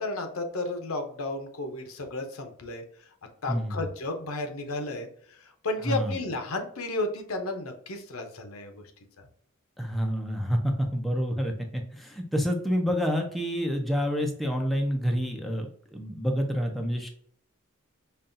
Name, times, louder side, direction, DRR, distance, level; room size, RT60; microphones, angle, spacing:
voice 1, 0.0-2.8 3.4-5.1 5.6-8.7, left 2 dB, 70° left, 5 dB, 0.7 m, -33 dB
voice 2, 3.5-3.9 5.8-6.2 9.8-15.7 15.9-17.1, equal, ahead, 2 dB, 0.5 m, -28 dB
5.3 x 2.3 x 2.6 m, 0.63 s
head